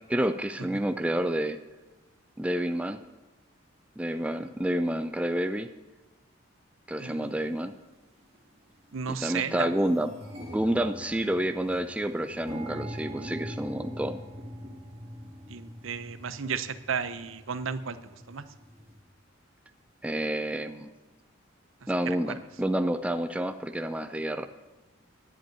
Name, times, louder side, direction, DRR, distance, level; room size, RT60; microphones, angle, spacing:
voice 1, 0.1-1.6 2.4-3.0 4.0-5.7 6.9-7.7 9.1-10.1 10.5-14.2 20.0-20.9 21.9-24.5, right 1 dB, 5° right, 9 dB, 0.4 m, -29 dB
voice 2, 7.0-7.3 8.9-9.7 15.5-18.0 18.3-18.4 21.8-22.3, right 6 dB, 75° right, 12 dB, 0.7 m, -34 dB
sound 1, 7.4-7.5 8.3-8.5 8.9-9.0 9.3-19.0, equal, 30° right, 2.1 m, -43 dB
10.5 x 7.3 x 9.2 m, 1.2 s
head